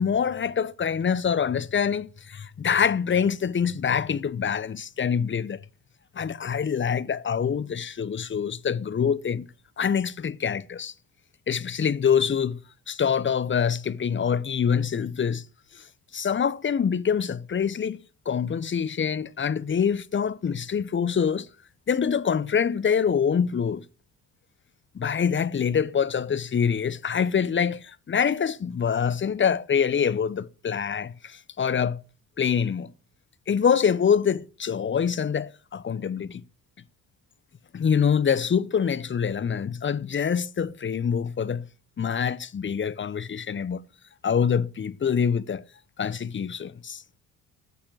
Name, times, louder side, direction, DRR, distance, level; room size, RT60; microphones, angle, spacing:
voice 1, 0.0-5.6 6.1-9.5 9.8-10.9 11.5-12.6 12.9-15.4 15.7-15.8 16.1-18.0 18.3-21.5 21.9-23.8 24.9-32.0 32.4-32.9 33.5-36.4 37.7-41.7 42.0-43.8 44.2-45.6 46.0-47.0, left 7 dB, 30° left, 0.7 m, -25 dB
9.1 x 7.2 x 7.7 m
supercardioid pair, 60°, 38 cm